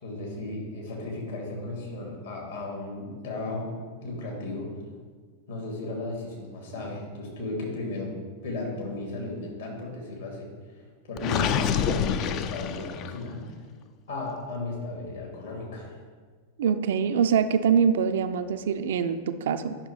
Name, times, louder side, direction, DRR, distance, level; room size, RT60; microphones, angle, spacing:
voice 1, 0.0-3.7 4.0-4.7 5.5-8.1 8.4-10.5 11.1-13.4 14.1-15.9, left 2 dB, 65° left, -2 dB, 2.4 m, -35 dB
Gurgling, 11.2-13.3, left 8 dB, 35° left, 0.4 m, -27 dB
voice 2, 16.6-19.8, right 7 dB, 60° right, 10 dB, 0.4 m, -24 dB
9.8 x 6.0 x 3.2 m, 1.5 s
figure-of-eight pair, 90°, 0 cm